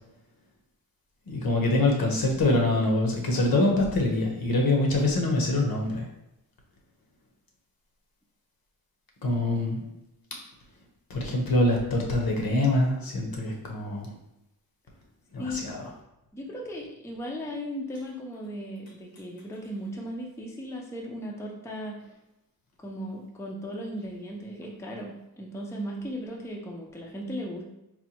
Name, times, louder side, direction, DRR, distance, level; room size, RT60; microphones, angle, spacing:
voice 1, 1.3-6.0 9.2-9.8 11.1-14.1 15.3-15.8, left 2 dB, 65° left, 0 dB, 0.9 m, -24 dB
voice 2, 15.4-15.7 16.3-22.0 22.8-27.6, equal, 5° left, -1 dB, 0.4 m, -37 dB
4.2 x 2.2 x 2.8 m, 0.88 s
wide cardioid pair, 130°, 38 cm